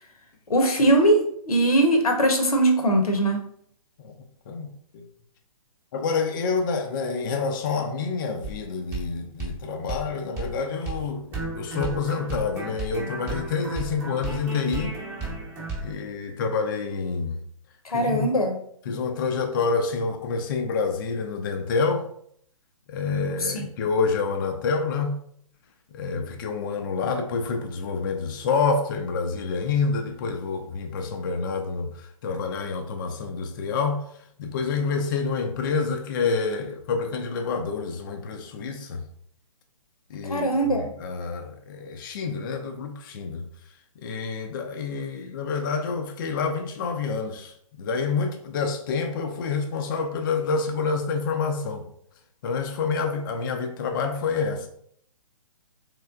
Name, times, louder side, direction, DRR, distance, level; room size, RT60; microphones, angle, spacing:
voice 1, 0.5-3.4 17.8-18.6 23.4-23.7 40.2-40.9, right 1 dB, 90° left, 4 dB, 0.9 m, -21 dB
voice 2, 4.5-5.0 5.9-14.9 15.8-17.4 17.9-18.3 18.9-22.0 22.9-25.2 25.9-34.0 34.4-39.0 40.1-43.4 44.0-51.8 52.4-54.7, left 4 dB, 35° left, 4 dB, 0.4 m, -28 dB
sound 1, 8.4-8.6 8.9-9.1 9.4-9.6 9.9-10.1 10.4-10.5 10.9-11.0 11.3-15.9, right 2 dB, 15° right, 0.8 m, -33 dB
3.3 x 3.1 x 2.3 m, 0.65 s
hypercardioid pair, 145°, 19 cm